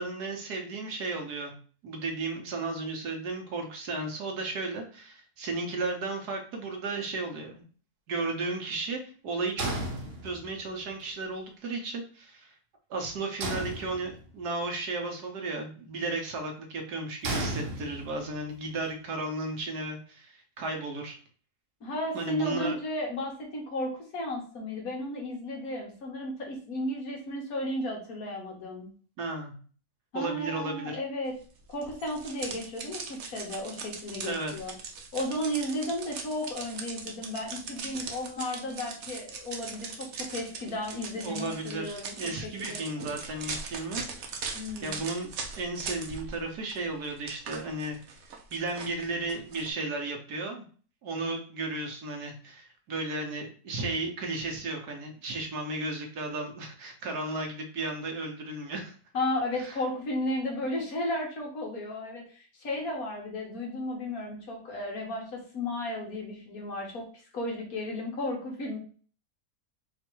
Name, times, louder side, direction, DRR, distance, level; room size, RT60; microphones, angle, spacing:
voice 1, 0.0-1.6 1.8-7.6 8.1-9.7 10.2-12.5 12.9-21.2 22.1-22.7 29.2-29.6 30.1-31.0 34.2-34.5 41.2-44.4 44.8-48.0 48.5-50.6 51.0-59.0 59.6-59.8, right 2 dB, 90° right, 3 dB, 1.6 m, -34 dB
sound 1, 9.6-10.7 13.4-14.4 17.2-18.4, right 2 dB, 50° right, 0.8 m, -34 dB
voice 2, 21.8-28.9 30.1-31.4 31.7-34.7 35.1-42.8 44.5-45.0 59.1-67.1 67.3-68.8, left 1 dB, 70° left, 0 dB, 1.7 m, -34 dB
sound 2, 31.8-46.4 46.7-49.7, right 5 dB, 65° right, 1.2 m, -40 dB
4.4 x 2.6 x 4.5 m, 0.41 s
omnidirectional pair, 1.6 m